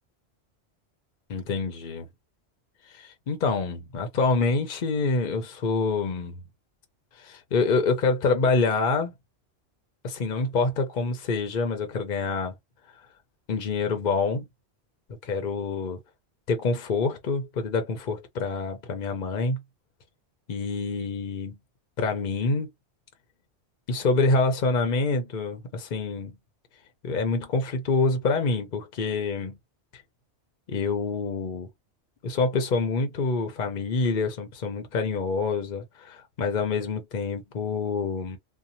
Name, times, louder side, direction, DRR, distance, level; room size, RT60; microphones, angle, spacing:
voice 1, 1.3-2.0 2.9-6.4 7.2-9.1 10.0-12.5 13.5-14.4 15.2-16.0 16.5-19.6 20.5-21.6 22.0-22.7 23.9-26.3 27.0-29.6 30.7-31.7 32.2-38.4, left 4 dB, 55° left, 0.7 m, -26 dB
2.8 x 2.2 x 2.5 m
omnidirectional pair, 1.1 m